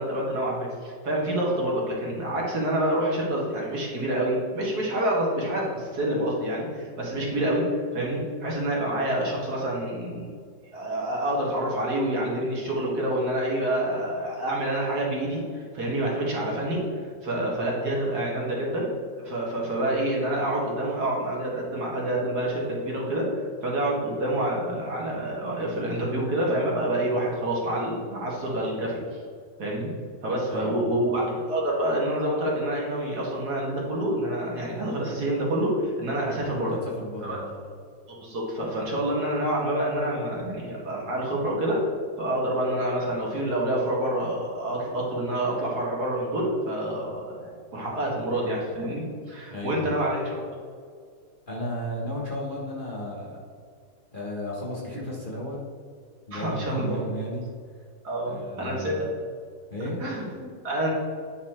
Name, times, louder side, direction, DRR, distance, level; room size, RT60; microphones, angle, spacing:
voice 1, 0.0-10.3 10.7-18.9 19.2-29.2 29.6-29.9 30.2-36.7 37.2-37.4 38.1-41.8 42.2-50.4 56.3-57.0 58.0-59.1 60.0-60.9, right 1 dB, 60° right, -3 dB, 2.2 m, -27 dB
voice 2, 30.5-30.8 36.6-37.6 49.5-49.9 51.5-53.4 54.1-55.6 56.3-57.5 58.3-59.0 59.7-60.0, equal, 30° left, -5 dB, 1.3 m, -34 dB
9.4 x 4.2 x 4.3 m, 2.1 s
omnidirectional pair, 2.0 m